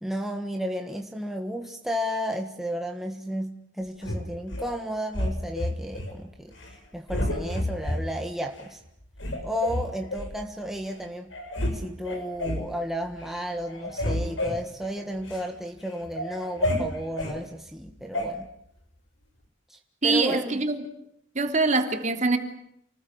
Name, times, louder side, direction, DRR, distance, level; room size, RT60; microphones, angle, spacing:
voice 1, 0.0-6.5 6.9-8.8 9.4-11.3 11.7-18.5 19.7-20.6, equal, ahead, 3 dB, 1.6 m, -33 dB
sound 1, 4.0-4.7 5.1-6.1 6.5-6.8 7.1-8.0 8.6-8.7 9.2-10.3 10.9-11.0 11.3-11.8 12.0-12.7 13.1-13.4 13.7-15.5 15.9-17.4 18.1-18.3, left 1 dB, 85° left, 6.8 m, -30 dB
voice 2, 20.0-20.8 21.3-22.4, right 3 dB, 40° right, 6 dB, 3.2 m, -23 dB
29.0 x 20.5 x 8.9 m, 0.74 s
head